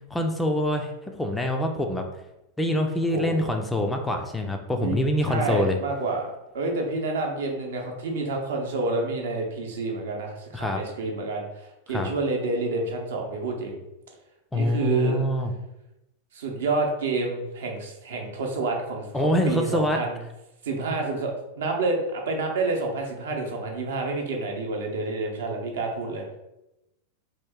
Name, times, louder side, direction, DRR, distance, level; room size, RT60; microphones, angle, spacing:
voice 1, 0.1-2.1 2.6-5.8 10.5-10.8 11.9-12.1 14.5-15.5 19.1-20.0, left 1 dB, 10° left, 3 dB, 0.4 m, -25 dB
voice 2, 3.1-3.5 4.8-6.3 6.5-13.8 14.5-15.2 16.3-20.2 20.6-26.2, right 3 dB, 60° right, 1 dB, 0.7 m, -29 dB
2.9 x 2.7 x 3.5 m, 0.92 s
figure-of-eight pair, 90°, 0 cm